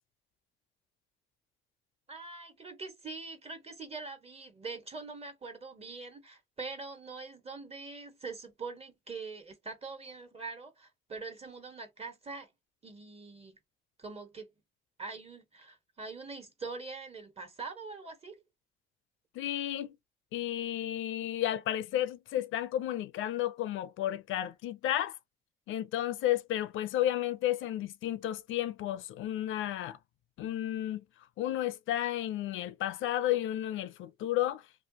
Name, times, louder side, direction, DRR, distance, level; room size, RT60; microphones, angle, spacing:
voice 1, 2.1-12.5 12.8-13.6 14.0-14.5 15.0-18.4, right 4 dB, 30° right, 1.4 m, -43 dB
voice 2, 19.3-20.0 20.3-25.2 25.7-30.0 30.4-31.0 31.4-34.6, left 12 dB, 80° left, 0.5 m, -32 dB
3.1 x 2.4 x 2.7 m
cardioid pair, 90°, 20 cm